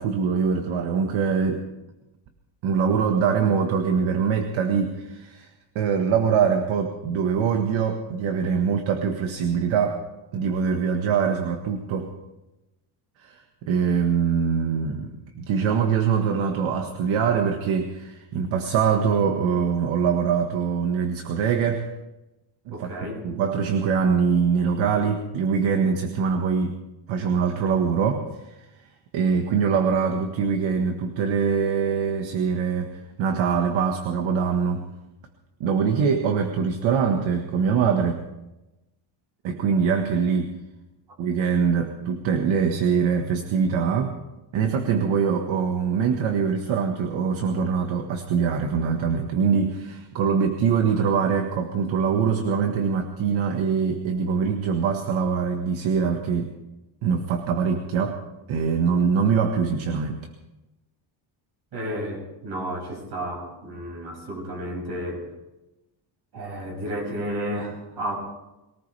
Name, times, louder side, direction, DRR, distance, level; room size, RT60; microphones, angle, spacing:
voice 1, 0.0-1.6 2.6-5.5 5.7-10.0 10.3-12.1 13.2-15.1 15.4-21.9 22.7-22.9 23.2-26.8 27.1-28.3 29.1-34.9 35.6-38.2 39.4-40.5 41.2-44.2 44.5-56.5 57.0-58.2 58.5-60.2, right 6 dB, 75° right, 5 dB, 1.6 m, -23 dB
voice 2, 22.7-23.2 61.7-65.3 66.3-68.2, equal, 55° right, 0 dB, 6.7 m, -32 dB
22.5 x 18.5 x 3.4 m, 0.99 s
cardioid pair, 150°, 48 cm